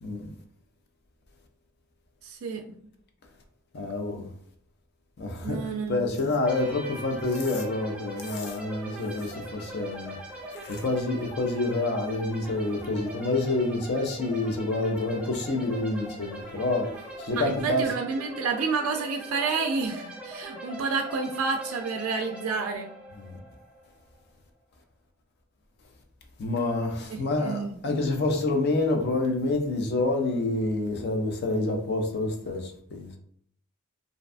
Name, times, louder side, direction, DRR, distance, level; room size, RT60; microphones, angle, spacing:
voice 1, 2.2-2.6 5.4-6.1 17.4-22.9 27.1-27.8, right 4 dB, 75° right, 0.3 m, -29 dB
voice 2, 3.7-4.3 5.2-10.2 10.5-17.9 23.1-23.4 26.4-33.1, left 2 dB, 50° left, 0.5 m, -28 dB
sound 1, 6.4-24.0, right 1 dB, 5° right, 0.5 m, -41 dB
2.6 x 2.2 x 2.4 m
head